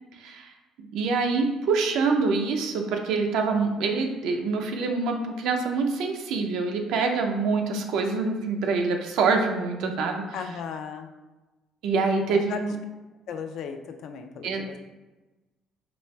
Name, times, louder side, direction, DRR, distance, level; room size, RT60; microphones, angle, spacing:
voice 1, 0.2-0.5 0.8-10.2 11.8-12.7 14.4-14.6, right 4 dB, 75° right, 4 dB, 0.4 m, -25 dB
voice 2, 10.3-11.1 12.3-12.6 13.3-14.7, left 7 dB, 65° left, 6 dB, 0.3 m, -36 dB
4.2 x 3.1 x 2.2 m, 1.1 s
cardioid pair, 120°, 0 cm